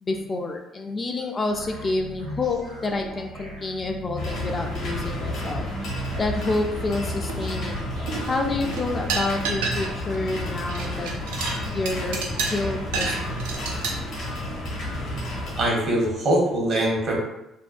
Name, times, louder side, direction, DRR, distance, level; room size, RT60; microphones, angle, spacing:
voice 1, 0.0-5.6 6.2-7.8 8.3-11.1 11.7-13.4, left 2 dB, 35° left, 3 dB, 0.3 m, -28 dB
sound 1, 1.5-16.3, right 2 dB, 90° right, 1.1 m, -39 dB
sound 2, 4.2-15.7, left 1 dB, 60° left, 0.8 m, -31 dB
sound 3, 7.3-7.8 8.1-10.2 10.4-13.9, right 4 dB, 75° right, 0.3 m, -29 dB
voice 2, 15.6-17.2, right 1 dB, 50° right, -2 dB, 0.8 m, -23 dB
2.6 x 2.1 x 2.4 m, 0.88 s
figure-of-eight pair, 50°, 0 cm